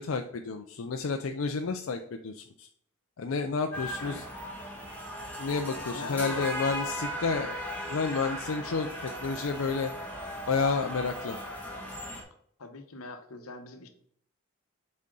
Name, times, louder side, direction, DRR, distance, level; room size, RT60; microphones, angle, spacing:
voice 1, 0.0-2.7 3.2-4.3 5.4-7.6 7.9-9.9 10.5-11.4, left 4 dB, 70° left, 5 dB, 0.5 m, -31 dB
sound 1, 3.7-12.2, equal, 5° left, 1.2 m, -37 dB
voice 2, 5.7-6.5 12.6-13.9, left 3 dB, 90° left, 7 dB, 1.0 m, -41 dB
7.3 x 4.3 x 3.8 m, 0.65 s
head